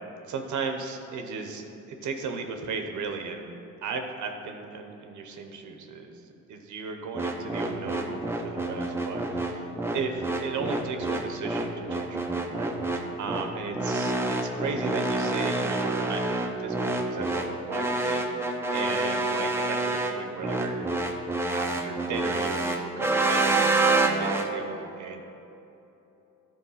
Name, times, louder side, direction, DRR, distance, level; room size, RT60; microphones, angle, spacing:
voice 1, 0.3-9.7 9.9-20.9 21.5-25.2, right 5 dB, 75° right, 4 dB, 0.9 m, -36 dB
sound 1, 7.2-24.5, right 2 dB, 10° right, 0.8 m, -27 dB
10.5 x 4.4 x 5.7 m, 2.9 s
cardioid pair, 90°, 30 cm